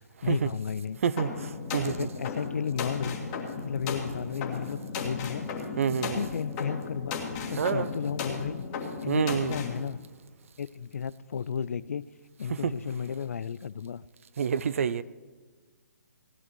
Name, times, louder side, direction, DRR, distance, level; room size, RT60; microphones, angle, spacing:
voice 1, 0.2-1.0 1.8-3.2 3.6-5.5 5.9-7.2 7.5-8.6 9.0-10.0 10.6-12.0 12.4-14.0, left 7 dB, 60° left, 0.4 m, -33 dB
voice 2, 1.0-1.9 5.8-6.2 7.6-7.9 9.1-9.6 12.6-12.7 14.4-15.0, right 7 dB, 55° right, 0.6 m, -27 dB
sound 1, 1.2-9.8, left 5 dB, 25° left, 2.2 m, -35 dB
17.0 x 11.0 x 4.6 m
figure-of-eight pair, 145°, 9 cm